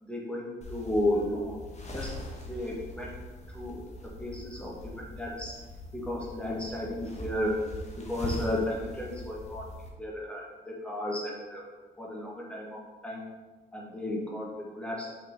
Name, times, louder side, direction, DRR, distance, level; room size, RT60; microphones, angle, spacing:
voice 1, 0.0-1.6 1.9-2.1 2.5-3.1 3.5-5.6 5.9-7.5 8.0-9.7 10.0-11.7 12.0-13.3 13.7-15.1, left 1 dB, 5° left, -4 dB, 2.0 m, -33 dB
sound 1, 0.6-9.9, left 1 dB, 35° left, 1.5 m, -42 dB
6.1 x 5.4 x 4.0 m, 1.3 s
cardioid pair, 90°, 20 cm